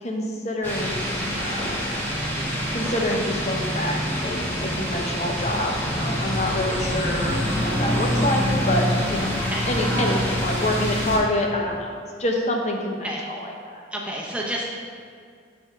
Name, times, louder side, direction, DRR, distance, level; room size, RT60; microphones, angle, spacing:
voice 1, 0.0-2.0 2.7-9.3 9.7-11.9 12.2-13.0 13.3-13.8, left 1 dB, 35° left, 1 dB, 0.7 m, -27 dB
sound 1, 0.6-11.2, equal, 10° left, 1.0 m, -26 dB
voice 2, 13.9-14.6, right 1 dB, 5° right, -3 dB, 0.7 m, -29 dB
7.0 x 3.6 x 5.5 m, 2.1 s
head